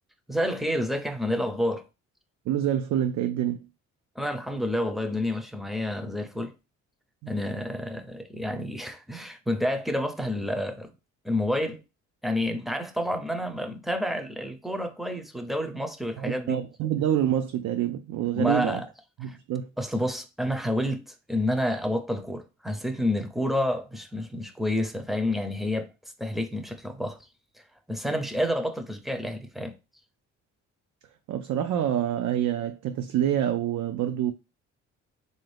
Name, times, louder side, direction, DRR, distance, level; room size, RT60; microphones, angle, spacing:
voice 1, 0.3-1.8 4.2-6.5 7.3-10.9 11.2-11.8 12.2-16.6 18.3-18.9 19.3-19.4 19.8-25.9 26.2-27.2 27.9-29.7, left 1 dB, ahead, 0.6 m, -29 dB
voice 2, 2.5-3.7 7.2-7.4 16.2-18.8 19.2-19.7 31.3-34.3, right 11 dB, 70° right, 0.5 m, -27 dB
3.7 x 2.7 x 3.3 m
cardioid pair, 90°, 30 cm